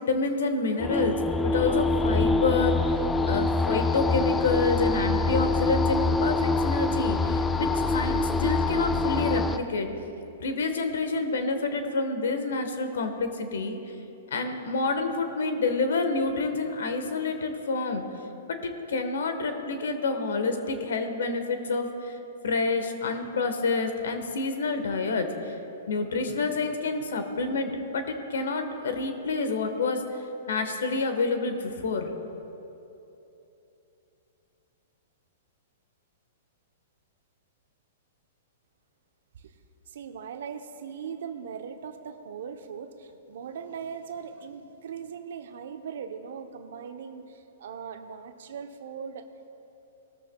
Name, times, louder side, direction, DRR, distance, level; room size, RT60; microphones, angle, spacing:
voice 1, 0.0-3.0 3.3-9.9 10.4-13.8 14.3-18.0 18.5-22.2 22.4-25.5 25.9-30.0 30.5-32.1, left 3 dB, 75° left, 7 dB, 1.3 m, -28 dB
sound 1, 0.8-9.6, left 3 dB, 10° left, 0.4 m, -25 dB
voice 2, 39.9-49.3, right 7 dB, 70° right, 8 dB, 0.9 m, -39 dB
18.5 x 13.5 x 2.3 m, 3.0 s
hypercardioid pair, 120°, 0 cm